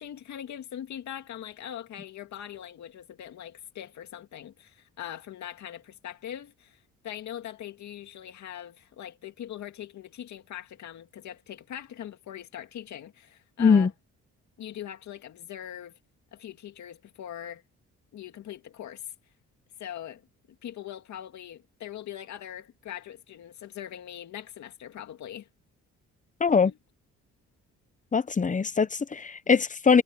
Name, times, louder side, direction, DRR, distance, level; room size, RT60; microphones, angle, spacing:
voice 1, 0.0-13.9 14.6-16.0 16.3-17.6 18.1-19.1 19.8-20.2 20.6-25.5 26.7-26.8, left 10 dB, 70° left, 2.1 m, -41 dB
voice 2, 13.6-13.9 26.4-26.7 28.1-30.0, left 5 dB, 25° left, 1.0 m, -22 dB
cardioid pair, 90°, 30 cm